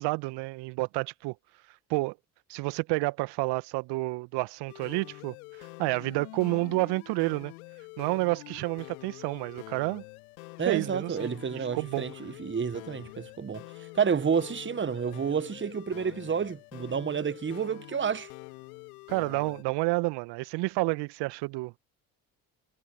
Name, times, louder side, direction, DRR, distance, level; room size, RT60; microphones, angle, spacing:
voice 1, 0.0-1.3 1.9-2.2 2.5-7.5 8.0-10.0 10.7-12.1 19.1-21.8, right 24 dB, 65° right, 1.6 m, -30 dB
sound 1, 4.7-19.6, left 28 dB, 70° left, 3.2 m, -46 dB
voice 2, 10.6-13.6 13.9-18.3, right 6 dB, 25° right, 1.5 m, -30 dB
figure-of-eight pair, 50°, 44 cm